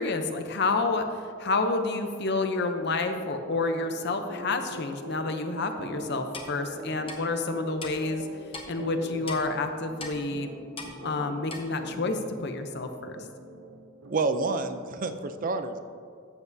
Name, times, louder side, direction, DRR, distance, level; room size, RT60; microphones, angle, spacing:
voice 1, 0.0-8.3 8.7-10.5 11.0-13.2, left 3 dB, 55° left, 7 dB, 0.7 m, -29 dB
sound 1, 2.8-14.6, equal, 80° right, 0.8 m, -43 dB
Clock, 6.3-6.5 7.1-7.2 7.8-7.9 8.5-8.7 9.3-9.4 10.0-10.2 10.8-10.9 11.5-11.6, left 3 dB, 30° left, 0.9 m, -38 dB
voice 2, 14.1-15.8, right 3 dB, 40° right, 9 dB, 0.5 m, -28 dB
13.5 x 7.3 x 2.7 m, 2.3 s
head